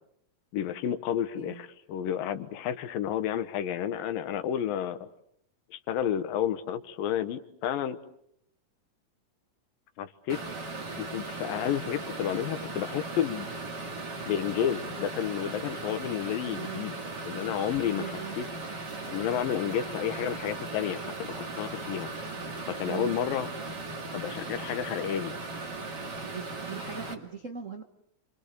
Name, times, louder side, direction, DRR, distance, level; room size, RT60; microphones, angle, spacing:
voice 1, 0.5-5.1 5.7-8.0 10.0-10.5 11.0-13.5 14.3-17.0 17.3-18.5 19.1-22.1 22.7-23.5 24.1-25.3, left 9 dB, 90° left, 11 dB, 3.0 m, -31 dB
sound 1, 10.3-27.1, right 3 dB, 35° right, 2.5 m, -38 dB
voice 2, 16.5-16.9 17.9-18.4 22.8-23.2 26.2-27.8, right 7 dB, 65° right, 5 dB, 0.7 m, -40 dB
29.5 x 26.0 x 6.7 m, 0.71 s
omnidirectional pair, 3.9 m